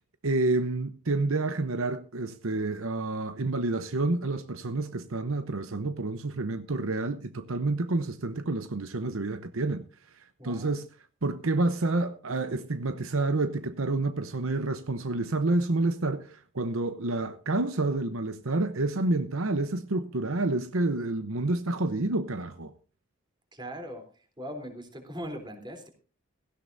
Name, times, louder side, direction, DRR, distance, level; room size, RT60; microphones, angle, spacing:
voice 1, 0.2-9.9 10.1-10.9 11.2-22.7, right 2 dB, 65° right, 0.9 m, -29 dB
voice 2, 10.4-10.8 23.5-25.9, equal, 20° right, 3.5 m, -40 dB
17.5 x 15.5 x 2.7 m
head